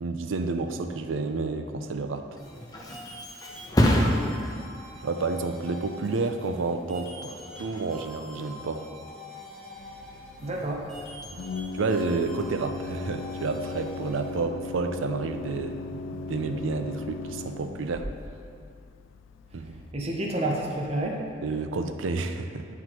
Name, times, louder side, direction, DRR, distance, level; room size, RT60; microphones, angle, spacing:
voice 1, 0.0-2.3 5.0-8.9 11.3-11.4 11.7-18.1 19.5-19.8 21.4-22.7, right 3 dB, 90° right, 7 dB, 0.5 m, -30 dB
Thump thud, 2.2-9.6 10.0-10.5, equal, 20° left, 0.6 m, -30 dB
sound 1, 2.4-14.4, left 1 dB, ahead, 1.4 m, -45 dB
voice 2, 3.8-4.2 10.4-10.8 19.9-21.2, right 1 dB, 30° right, -1 dB, 0.6 m, -29 dB
Organ, 9.8-19.9, left 3 dB, 85° left, 0.3 m, -38 dB
9.5 x 5.9 x 3.0 m, 2.4 s
head